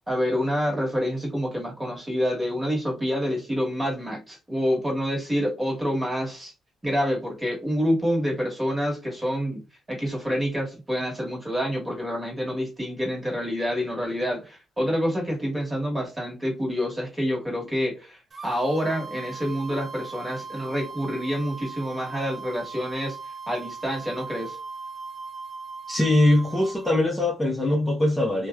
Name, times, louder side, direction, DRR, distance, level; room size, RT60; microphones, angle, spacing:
voice 1, 0.1-6.5 6.8-9.6 9.9-23.2 23.5-24.6, equal, 15° right, 1.4 m, -27 dB
sound 1, 18.3-26.9, right 5 dB, 30° right, 0.6 m, -39 dB
voice 2, 25.9-28.5, left 1 dB, 10° left, 0.7 m, -22 dB
2.8 x 2.3 x 2.2 m
cardioid pair, 90°, 0 cm